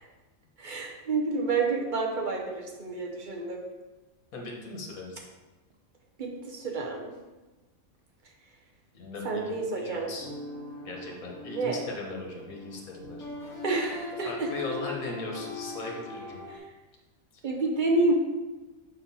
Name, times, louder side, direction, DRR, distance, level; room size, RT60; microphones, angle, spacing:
voice 1, 0.6-3.6 6.2-7.0 9.2-10.1 11.5-11.8 13.6-14.5 17.4-18.1, right 3 dB, 40° right, 0 dB, 0.9 m, -29 dB
voice 2, 4.3-5.2 8.9-10.3 10.8-13.3 14.3-16.4, left 3 dB, 80° left, -1 dB, 1.6 m, -38 dB
sound 1, 10.2-16.6, left 2 dB, ahead, 1.5 m, -41 dB
6.5 x 4.3 x 4.1 m, 1.1 s
omnidirectional pair, 1.4 m